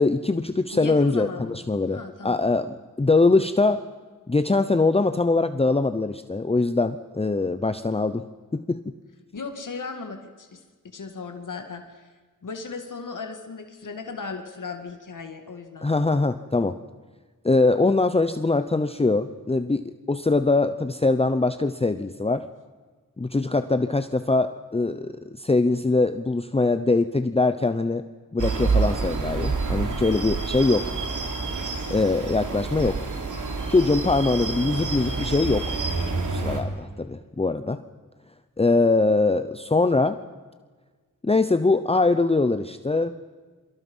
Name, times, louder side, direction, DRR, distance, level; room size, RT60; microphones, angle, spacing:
voice 1, 0.0-3.8 4.3-8.2 8.5-8.8 15.8-16.7 17.4-22.4 23.2-28.0 28.3-30.9 31.9-33.0 33.7-35.8 36.3-37.8 38.6-40.2 41.2-43.1, left 3 dB, 20° left, 10 dB, 0.8 m, -22 dB
voice 2, 0.7-1.6 1.9-2.4 9.3-12.1 12.4-15.9, left 4 dB, 65° left, 6 dB, 2.3 m, -37 dB
sound 1, 28.4-36.6, right 4 dB, 65° right, 3.3 m, -28 dB
28.5 x 24.5 x 5.6 m, 1.4 s
wide cardioid pair, 85°, 34 cm